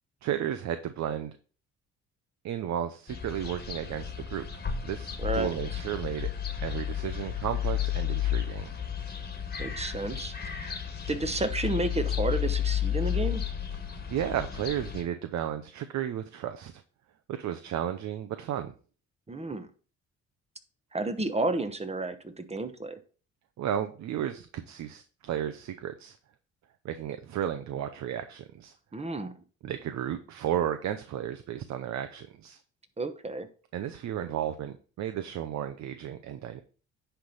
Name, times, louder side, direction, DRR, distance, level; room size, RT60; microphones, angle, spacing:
voice 1, 0.2-1.3 2.4-4.5 4.8-6.3 6.6-8.7 14.1-16.7 17.3-18.7 23.6-26.1 26.8-28.7 29.6-32.6 33.7-36.6, right 10 dB, 65° right, 0.7 m, -33 dB
sound 1, 3.1-15.0, left 9 dB, 30° left, 1.5 m, -32 dB
voice 2, 5.2-5.8 9.6-10.8 11.1-13.4 19.3-19.7 20.9-23.0 28.9-29.3 33.0-33.5, right 2 dB, 20° right, 1.1 m, -32 dB
10.0 x 3.5 x 5.6 m
cardioid pair, 90°, 30 cm